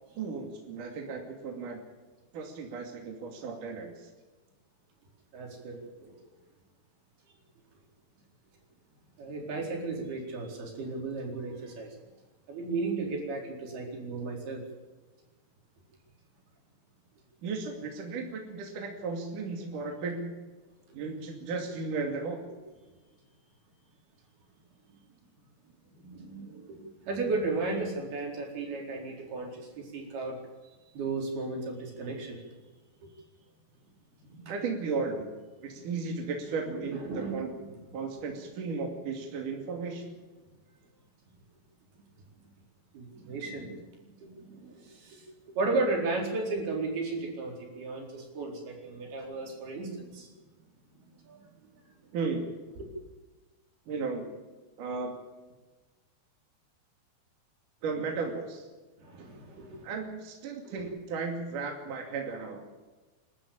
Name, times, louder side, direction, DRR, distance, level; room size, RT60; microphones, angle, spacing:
voice 1, 0.1-1.8 2.3-4.1 17.4-20.3 20.9-22.4 34.5-35.3 35.6-37.5 37.9-40.2 52.1-52.5 53.9-54.3 54.8-55.1 57.8-58.7 59.8-62.6, right 4 dB, 60° right, 2 dB, 3.9 m, -35 dB
voice 2, 5.3-6.2 9.2-12.0 12.5-14.6 25.9-30.4 30.9-32.4 33.0-33.1 34.3-34.5 35.7-35.8 36.6-37.7 42.9-43.8 44.2-50.3 51.1-51.7 59.0-59.9 60.7-60.8, right 3 dB, 80° right, 1 dB, 6.3 m, -35 dB
28.0 x 13.0 x 8.7 m, 1.2 s
omnidirectional pair, 4.4 m